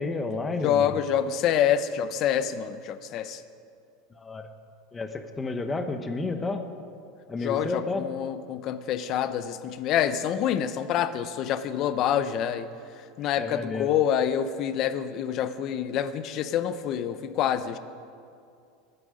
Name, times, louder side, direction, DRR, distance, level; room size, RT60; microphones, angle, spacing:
voice 1, 0.0-1.0 4.1-4.5 4.9-6.6 7.3-8.1 13.2-13.9, left 3 dB, 15° left, 7 dB, 1.1 m, -31 dB
voice 2, 0.6-3.4 7.4-12.7 13.2-17.8, left 9 dB, 45° left, 12 dB, 0.8 m, -27 dB
22.5 x 9.1 x 5.1 m, 2.4 s
supercardioid pair, 135°, 0 cm